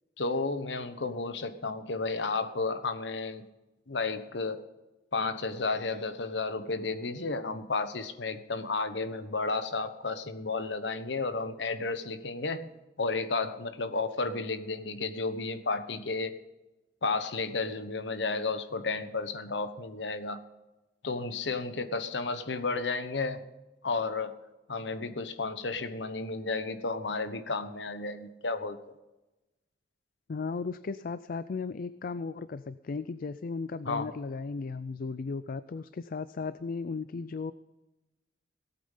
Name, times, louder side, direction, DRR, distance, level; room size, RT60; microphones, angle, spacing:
voice 1, 0.2-3.5 3.9-4.6 5.1-12.7 13.0-16.4 17.0-20.4 21.0-23.4 23.8-24.3 24.7-28.9 33.8-34.1, left 3 dB, 85° left, 10 dB, 1.1 m, -32 dB
voice 2, 30.3-37.5, left 4 dB, 55° left, 14 dB, 0.4 m, -36 dB
18.0 x 8.7 x 5.6 m, 1.0 s
head